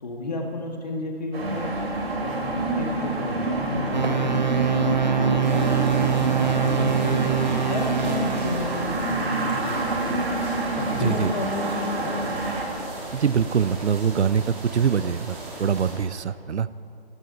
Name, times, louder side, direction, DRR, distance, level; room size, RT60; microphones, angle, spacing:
voice 1, 0.0-1.7 2.1-4.6 5.0-5.7 6.0-10.3 10.8-12.2, left 2 dB, 40° left, 1 dB, 1.9 m, -32 dB
sound 1, 1.3-12.6, right 2 dB, 65° right, 3.6 m, -27 dB
sound 2, 3.9-9.2, right 8 dB, 40° right, 0.6 m, -25 dB
sound 3, 5.4-15.9, right 1 dB, 10° right, 1.7 m, -38 dB
voice 2, 10.9-11.3 13.1-16.7, right 7 dB, 85° right, 17 dB, 0.7 m, -24 dB
23.5 x 14.5 x 4.2 m, 2.7 s
hypercardioid pair, 175°, 33 cm